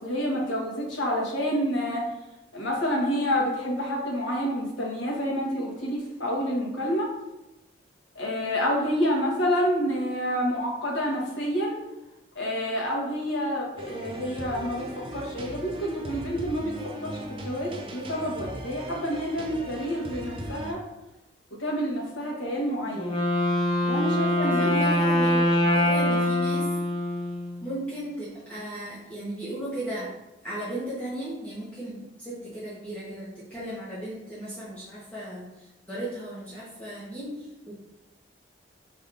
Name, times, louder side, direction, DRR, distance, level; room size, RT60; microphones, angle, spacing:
voice 1, 0.0-2.0 2.5-7.1 8.1-11.8 12.3-14.9 15.1-16.7 17.0-17.2 17.4-20.8 21.6-23.1 23.8-25.4, equal, 85° left, -1 dB, 1.1 m, -28 dB
sound 1, 13.8-20.7, right 1 dB, 30° right, 0.4 m, -38 dB
Wind instrument woodwind instrument, 22.9-27.8, left 1 dB, 25° left, 0.6 m, -24 dB
voice 2, 24.4-26.7 27.6-30.1 30.4-37.7, right 1 dB, 10° left, -11 dB, 1.0 m, -36 dB
5.0 x 3.4 x 2.5 m, 0.96 s
head